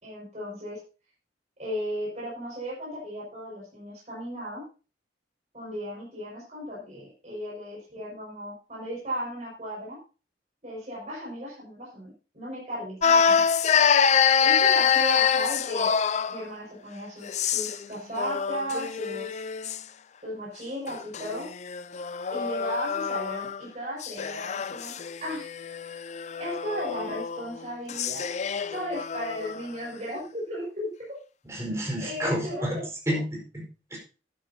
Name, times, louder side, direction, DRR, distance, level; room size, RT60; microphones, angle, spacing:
voice 1, 0.0-0.8 1.6-4.6 5.5-10.0 10.6-13.4 14.4-15.9 16.3-19.4 20.2-21.5 22.3-25.5 26.4-28.3 28.7-31.1 32.0-32.8 33.1-33.2, equal, 40° right, -6 dB, 5.8 m, -35 dB
sound 1, 13.0-16.4 17.2-17.8 18.2-19.8 20.9-23.6 24.0-29.6, left 7 dB, 40° left, 0.4 m, -26 dB
voice 2, 31.5-32.8 33.1-33.6 33.9-34.0, equal, 15° right, -1 dB, 4.6 m, -30 dB
12.5 x 11.5 x 2.8 m, 0.34 s
head